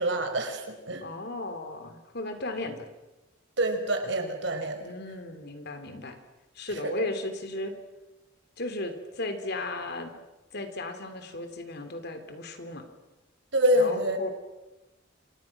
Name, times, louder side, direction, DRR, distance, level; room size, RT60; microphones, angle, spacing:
voice 1, 0.0-1.0 3.6-4.9 6.7-7.0 13.5-14.2, right 1 dB, 60° right, 6 dB, 4.7 m, -26 dB
voice 2, 1.0-2.9 4.8-6.2 6.5-7.7 8.6-10.1 10.5-12.8 13.8-14.3, left 2 dB, 55° left, 7 dB, 3.4 m, -35 dB
28.5 x 27.0 x 6.1 m, 1.0 s
head